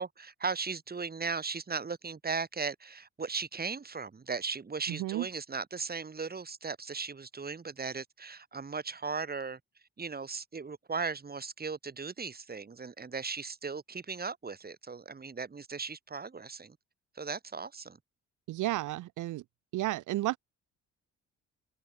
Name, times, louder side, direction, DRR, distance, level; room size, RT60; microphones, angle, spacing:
voice 1, 0.0-9.6 10.0-16.8 17.2-18.0, right 5 dB, 30° right, 4.1 m, -37 dB
voice 2, 4.9-5.3 18.5-19.4 19.7-20.4, right 16 dB, 80° right, 0.8 m, -32 dB
cardioid pair, 90°, 30 cm